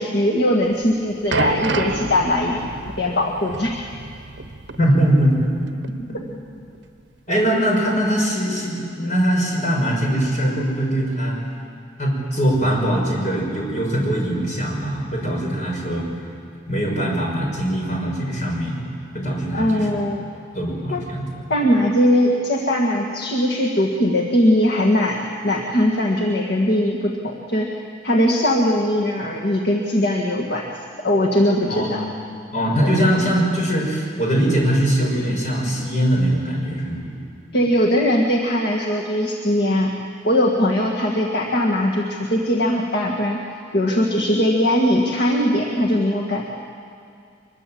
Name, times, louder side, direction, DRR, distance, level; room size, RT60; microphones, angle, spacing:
voice 1, 0.0-2.7 3.0-3.8 19.5-20.3 20.9-21.0 21.5-25.2 25.4-27.7 28.0-30.7 31.0-32.1 32.8-33.0 37.5-39.9 40.2-43.4 43.7-46.5, left 1 dB, 60° left, -1 dB, 1.8 m, -20 dB
sound 1, 0.7-5.6 5.8-6.0 6.7-6.8, right 3 dB, 65° right, 1.0 m, -29 dB
voice 2, 4.8-5.4 7.3-11.4 12.0-16.1 16.7-18.8 19.1-20.0 20.5-21.4 31.7-32.0 32.5-37.1, equal, 40° left, -1 dB, 5.9 m, -21 dB
23.5 x 22.0 x 7.7 m, 2.4 s
head